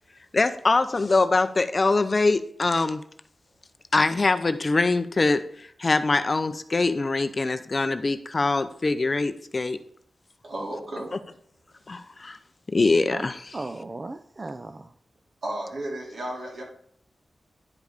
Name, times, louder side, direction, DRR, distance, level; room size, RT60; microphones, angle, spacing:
voice 1, 0.3-3.0 3.9-9.8 11.9-12.4 12.7-13.6, left 3 dB, 35° left, 10 dB, 0.6 m, -23 dB
voice 2, 10.4-11.2 15.4-16.6, right 1 dB, 55° right, -3 dB, 3.9 m, -33 dB
voice 3, 13.5-14.9, right 2 dB, 30° right, 9 dB, 0.4 m, -36 dB
10.5 x 5.2 x 5.1 m, 0.62 s
wide cardioid pair, 145°, 0 cm